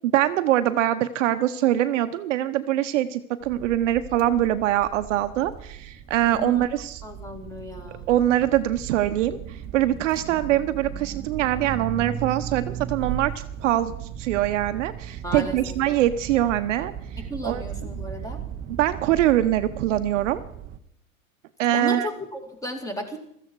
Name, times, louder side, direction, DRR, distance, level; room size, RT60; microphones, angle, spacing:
voice 1, 0.0-7.0 8.1-13.9 14.2-17.6 18.8-20.4 21.6-22.1, right 13 dB, 60° right, 10 dB, 1.0 m, -23 dB
sound 1, 3.4-20.8, right 9 dB, 20° right, 0.8 m, -36 dB
voice 2, 6.3-6.6 7.0-8.0 15.2-15.7 17.3-18.4 21.7-23.2, equal, 10° left, 5 dB, 2.5 m, -34 dB
16.0 x 14.0 x 4.7 m, 0.72 s
hypercardioid pair, 135°, 42 cm